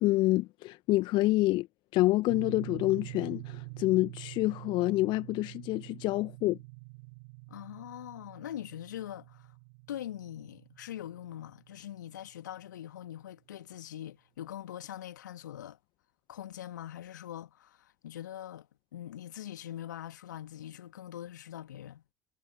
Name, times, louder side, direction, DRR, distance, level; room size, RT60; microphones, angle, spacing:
voice 1, 0.0-1.7 1.9-6.6, left 18 dB, 50° left, 1.3 m, -27 dB
sound 1, 2.3-12.4, right 31 dB, 60° right, 3.3 m, -46 dB
voice 2, 7.5-9.5 9.9-15.8 16.3-22.0, left 11 dB, 75° left, 2.2 m, -43 dB
figure-of-eight pair, 70°, 10 cm